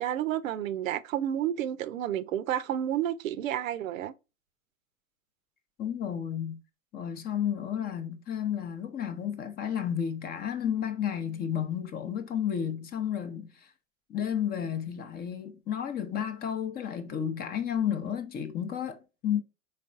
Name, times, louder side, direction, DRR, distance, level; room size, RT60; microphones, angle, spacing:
voice 1, 0.0-4.1, right 11 dB, 80° right, 0.6 m, -30 dB
voice 2, 5.8-6.6 6.9-13.7 14.1-19.4, left 9 dB, 25° left, 0.5 m, -32 dB
4.0 x 3.3 x 2.3 m
hypercardioid pair, 100°, 39 cm